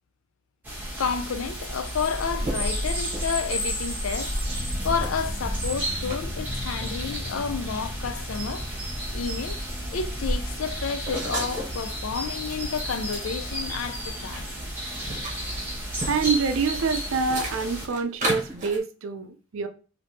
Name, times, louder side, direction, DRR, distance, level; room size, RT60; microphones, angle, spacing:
sound 1, 0.6-17.9, equal, 10° right, 1.0 m, -32 dB
voice 1, 1.0-4.3 4.8-8.7 9.1-9.6 9.9-14.5, left 6 dB, 70° left, 0.4 m, -30 dB
sound 2, 2.0-3.8 4.3-4.5 5.0-6.2 6.8-7.0 7.6-7.7 8.0-9.9 10.2-11.8 12.2-14.4 14.7-18.8, right 1 dB, 35° right, 0.9 m, -37 dB
sound 3, 4.5-15.9, left 1 dB, 15° left, 1.1 m, -38 dB
voice 2, 16.1-19.7, right 5 dB, 65° right, 0.5 m, -26 dB
3.4 x 2.7 x 2.7 m
head